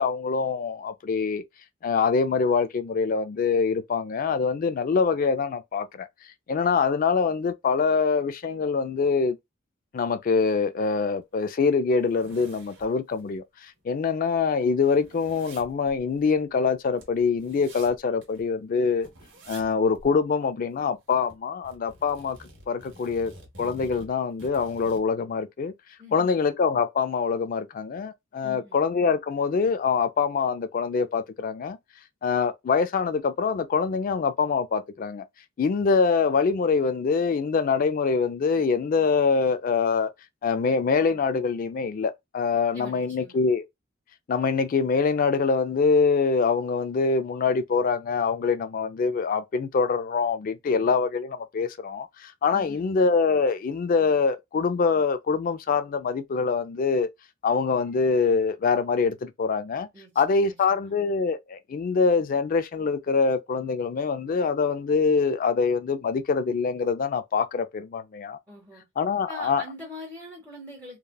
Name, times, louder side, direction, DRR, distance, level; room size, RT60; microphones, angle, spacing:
voice 1, 0.0-1.4 1.8-6.1 6.5-9.4 9.9-13.4 13.8-19.1 19.5-22.4 22.7-23.3 23.6-25.7 26.1-31.8 32.2-35.2 35.6-40.1 40.4-43.6 44.3-57.1 57.4-59.9 60.2-68.4 69.0-69.6, left 5 dB, 40° left, 0.3 m, -24 dB
sound 1, 10.8-10.9 11.3-11.4 11.8-13.4 13.8-13.9 14.1-18.5 19.0-19.7 19.9-20.1 20.4-21.4 21.6-25.1, right 1 dB, 60° right, 1.0 m, -49 dB
voice 2, 26.0-26.5 28.4-28.8 42.7-43.4 52.5-52.9 59.9-60.9 68.5-68.8 69.3-71.0, left 1 dB, 15° right, 1.0 m, -43 dB
3.2 x 2.2 x 2.2 m
head